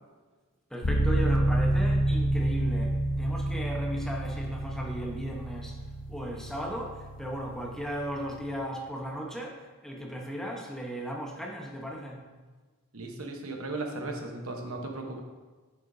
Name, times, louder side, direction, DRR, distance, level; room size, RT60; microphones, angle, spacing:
voice 1, 0.7-5.8 6.1-12.2, equal, ahead, -1 dB, 1.0 m, -36 dB
sound 1, 0.8-8.6, right 1 dB, 40° left, 0.8 m, -29 dB
voice 2, 12.9-15.2, right 2 dB, 70° right, 2 dB, 1.1 m, -36 dB
10.5 x 6.7 x 2.7 m, 1.4 s
head